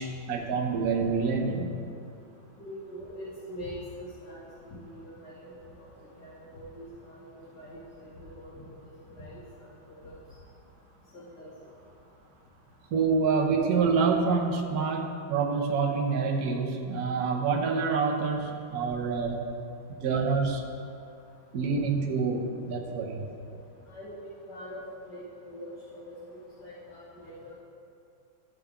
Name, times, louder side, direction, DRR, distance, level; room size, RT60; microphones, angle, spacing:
voice 1, 0.0-1.8 12.9-19.5 20.0-20.6 21.5-23.3, right 5 dB, 60° right, 1 dB, 1.3 m, -27 dB
voice 2, 2.6-4.4 4.7-5.5 5.8-5.9 6.2-7.2 7.5-8.1 8.4-8.6 9.2-9.7 10.0-10.1 11.1-11.5 23.9-24.2 24.5-25.2 25.5-26.1 26.6-27.5, equal, 55° left, -9 dB, 2.3 m, -43 dB
13.5 x 6.8 x 3.7 m, 2.5 s
omnidirectional pair, 2.1 m